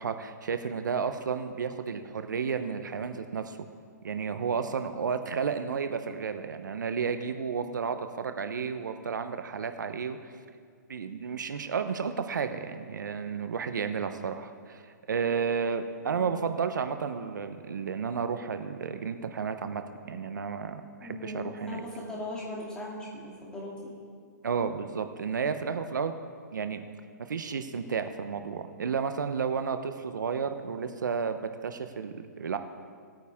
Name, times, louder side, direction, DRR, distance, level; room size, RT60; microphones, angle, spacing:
voice 1, 0.0-3.6 4.0-10.3 10.9-21.8 24.4-26.1 26.5-26.8 27.2-32.6, right 6 dB, 85° right, 8 dB, 0.9 m, -32 dB
voice 2, 21.0-23.9, left 1 dB, 10° left, -4 dB, 2.5 m, -39 dB
19.0 x 9.1 x 3.6 m, 2.1 s
hypercardioid pair, 150°, 10 cm